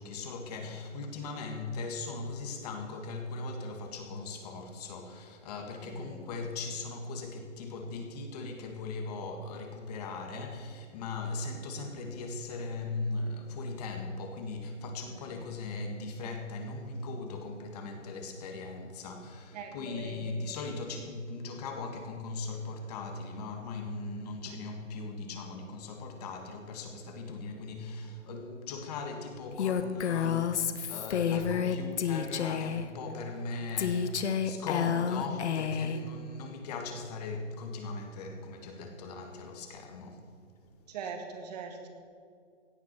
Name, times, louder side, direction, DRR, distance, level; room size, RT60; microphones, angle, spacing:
voice 1, 0.0-40.2, left 3 dB, 30° left, 1.8 m, -39 dB
voice 2, 5.8-6.2 15.0-15.4 19.5-20.3 40.9-41.9, right 5 dB, 35° right, 1.9 m, -42 dB
Female speech woman speaking, 29.6-32.9 33.8-36.0, left 8 dB, 65° left, 1.3 m, -30 dB
17.0 x 9.8 x 6.0 m
hypercardioid pair, 160°, 37 cm